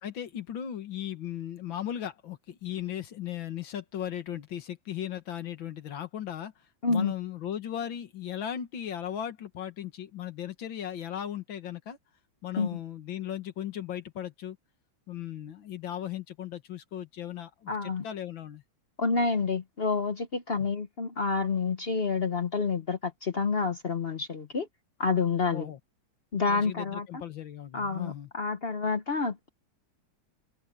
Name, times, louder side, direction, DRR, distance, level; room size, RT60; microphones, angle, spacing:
voice 1, 0.0-6.5 6.9-12.0 12.4-14.6 15.1-18.6 20.6-20.7 25.5-25.8 26.5-28.3, left 10 dB, 75° left, 2.2 m, -37 dB
voice 2, 17.7-18.0 19.0-24.7 25.0-25.7 26.3-27.2 27.7-29.5, left 4 dB, 45° left, 0.7 m, -28 dB
omnidirectional pair, 2.2 m